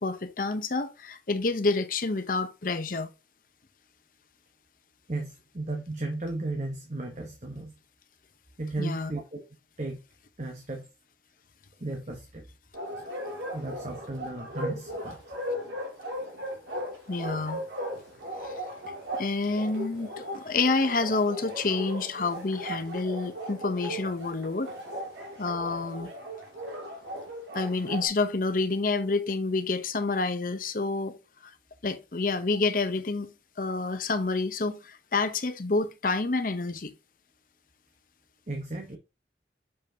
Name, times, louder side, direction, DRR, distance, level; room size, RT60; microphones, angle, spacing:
voice 1, 0.0-3.1 8.8-9.1 17.1-17.6 18.4-18.5 19.1-24.7 25.4-26.1 27.5-31.2 31.4-31.5 31.8-36.9, left 3 dB, 50° left, 0.8 m, -28 dB
voice 2, 5.1-7.7 8.6-9.5 9.8-10.0 10.4-10.9 11.8-12.4 13.5-15.2 38.5-39.0, right 2 dB, 40° right, 1.1 m, -35 dB
Bark, 12.7-28.1, equal, 85° right, 2.6 m, -37 dB
7.0 x 5.4 x 2.8 m
head